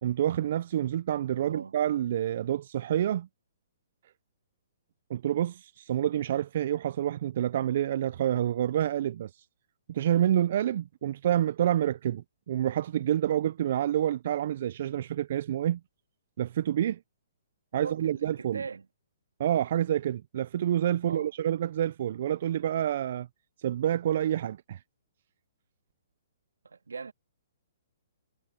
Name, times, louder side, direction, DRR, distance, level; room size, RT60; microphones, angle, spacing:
voice 1, 0.0-3.3 5.1-9.4 9.9-15.8 16.4-17.0 17.7-18.6 19.4-23.3 23.6-24.8, right 11 dB, 55° right, 0.5 m, -28 dB
voice 2, 1.4-1.8 17.7-18.9 21.0-21.3 26.6-27.1, right 5 dB, 90° right, 1.9 m, -40 dB
hypercardioid pair, 135°, 0 cm